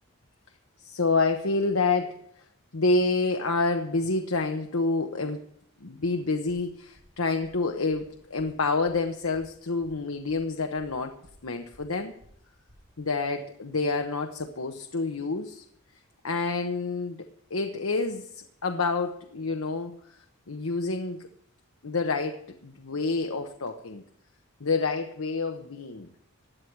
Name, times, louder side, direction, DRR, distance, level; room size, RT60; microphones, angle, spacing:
voice 1, 0.8-2.4 2.7-5.4 5.8-11.2 11.4-12.2 13.0-15.6 16.2-20.2 20.5-21.3 21.8-24.0 24.6-26.1, left 3 dB, 80° left, 4 dB, 1.0 m, -28 dB
sound 1, 6.5-13.1, equal, 60° right, 7.3 m, -58 dB
16.5 x 10.5 x 4.7 m, 0.69 s
head